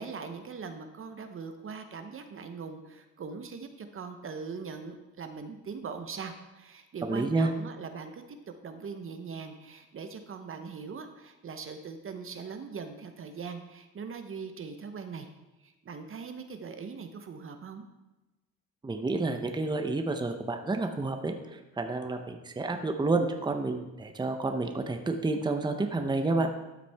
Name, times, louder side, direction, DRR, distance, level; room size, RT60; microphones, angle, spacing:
voice 1, 0.0-8.2 8.6-15.3 15.6-17.8, right 5 dB, 45° right, 7 dB, 0.9 m, -41 dB
voice 2, 7.0-7.5 18.8-26.5, right 3 dB, 15° right, 5 dB, 0.8 m, -30 dB
12.5 x 5.9 x 3.5 m, 1.1 s
cardioid pair, 90°, 30 cm